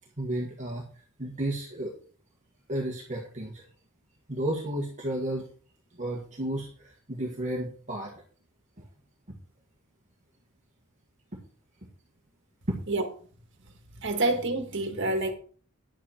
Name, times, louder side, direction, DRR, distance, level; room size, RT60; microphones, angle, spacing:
voice 1, 0.2-0.8 1.2-1.9 2.7-3.6 4.3-5.5 5.9-8.2 9.3-9.4 12.7-12.8, right 1 dB, 35° right, -1 dB, 1.7 m, -32 dB
voice 2, 14.0-15.3, right 2 dB, 55° right, 5 dB, 1.9 m, -27 dB
10.5 x 8.3 x 4.4 m, 0.43 s
head